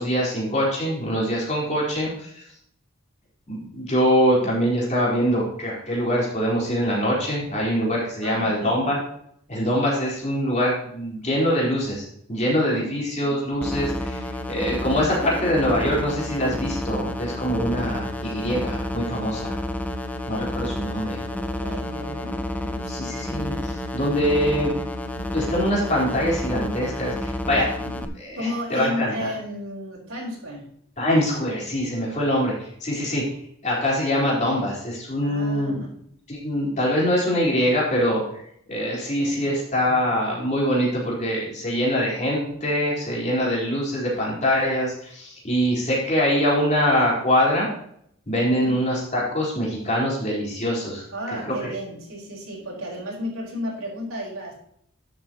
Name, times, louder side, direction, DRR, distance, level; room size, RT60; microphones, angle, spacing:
voice 1, 0.0-2.5 3.5-9.0 9.5-12.0 12.3-19.5 20.3-21.2 22.9-24.7 25.3-29.3 31.0-33.2 33.6-35.8 36.3-38.4 38.7-47.7 48.3-51.0 51.4-51.7, equal, 35° left, -5 dB, 4.4 m, -24 dB
voice 2, 8.2-8.8 21.3-23.1 28.4-30.7 35.2-35.9 39.2-39.5 48.6-48.8 51.1-54.5, left 1 dB, 80° right, -4 dB, 4.7 m, -33 dB
sound 1, 13.6-28.0, left 1 dB, 5° left, 0.6 m, -30 dB
12.0 x 8.4 x 3.1 m, 0.68 s
head